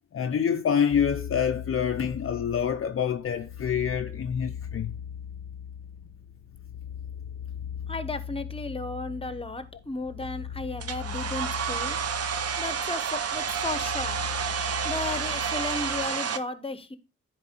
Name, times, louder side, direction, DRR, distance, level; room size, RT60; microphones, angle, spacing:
voice 1, 0.1-4.9, left 8 dB, 40° left, 0.6 m, -26 dB
sound 1, 0.9-16.1, left 8 dB, 70° left, 0.9 m, -39 dB
voice 2, 7.9-12.0 12.6-14.2 14.8-17.0, left 2 dB, 15° left, 1.0 m, -34 dB
Domestic sounds home sounds, 10.8-16.4, right 7 dB, 45° right, 0.8 m, -30 dB
10.0 x 4.4 x 4.4 m
cardioid pair, 65°, 33 cm